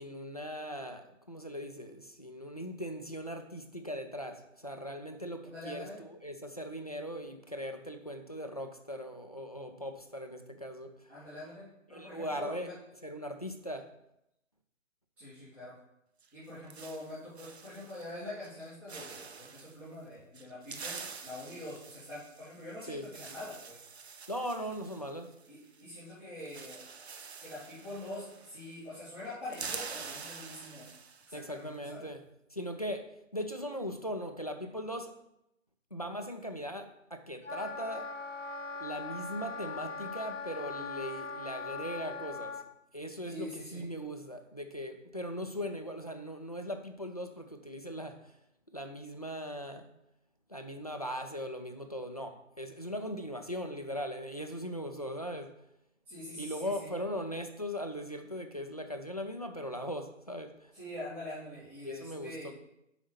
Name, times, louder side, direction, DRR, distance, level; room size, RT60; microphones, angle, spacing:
voice 1, 0.0-11.1 11.9-12.7 13.0-13.9 22.9-23.1 24.3-25.4 31.3-32.2 32.5-35.2 35.9-38.1 38.8-42.6 42.9-48.3 48.7-49.9 50.5-55.6 56.3-60.7 61.8-62.5, equal, 30° left, 5 dB, 0.4 m, -39 dB
voice 2, 5.4-6.1 11.1-12.7 15.2-15.8 16.3-23.8 25.5-26.8 27.4-30.9 31.3-32.1 43.3-43.9 56.1-56.9 60.7-62.5, left 1 dB, 5° right, -13 dB, 1.1 m, -44 dB
sound 1, 16.2-18.2 18.4-18.6 18.9-19.8 20.3-25.8 26.1-26.2 26.4-28.8 29.1-31.5, right 5 dB, 55° right, 0.6 m, -46 dB
Wind instrument woodwind instrument, 37.4-42.6, left 4 dB, 70° left, 0.7 m, -40 dB
4.9 x 4.2 x 5.8 m, 0.82 s
figure-of-eight pair, 145°, 39 cm